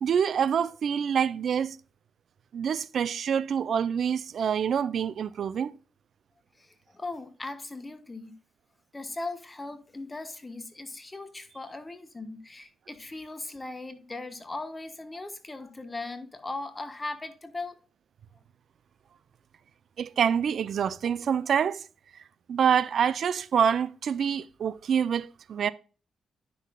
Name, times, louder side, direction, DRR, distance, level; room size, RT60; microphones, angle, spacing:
voice 1, 0.0-1.8 2.5-5.7 20.0-21.8 22.5-25.7, right 7 dB, 65° right, 0.4 m, -26 dB
voice 2, 6.9-8.3 8.9-17.8, left 2 dB, 20° left, 1.1 m, -38 dB
9.8 x 6.0 x 2.3 m
cardioid pair, 80°, 0 cm